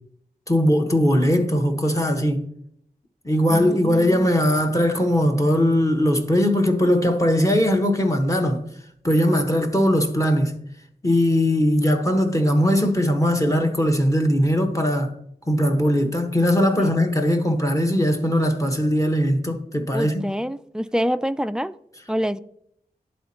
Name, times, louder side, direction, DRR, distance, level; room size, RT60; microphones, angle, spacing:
voice 1, 0.5-2.5 3.2-8.6 9.0-10.5 11.0-15.1 15.5-20.2, equal, 20° left, 1.2 m, -20 dB
voice 2, 3.5-4.3 16.8-16.9 19.9-21.7 22.1-22.4, equal, 5° right, 0.3 m, -26 dB
11.5 x 4.2 x 2.9 m
cardioid pair, 40°, 16 cm